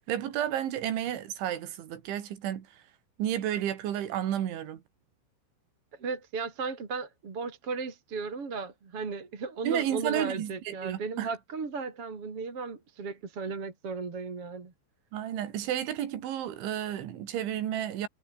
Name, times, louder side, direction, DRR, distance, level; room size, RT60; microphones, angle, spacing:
voice 1, 0.0-2.7 3.2-4.8 9.7-11.3 15.1-18.1, right 11 dB, 70° right, 4.7 m, -32 dB
voice 2, 6.0-14.7, right 4 dB, 30° right, 3.9 m, -35 dB
omnidirectional pair, 5.8 m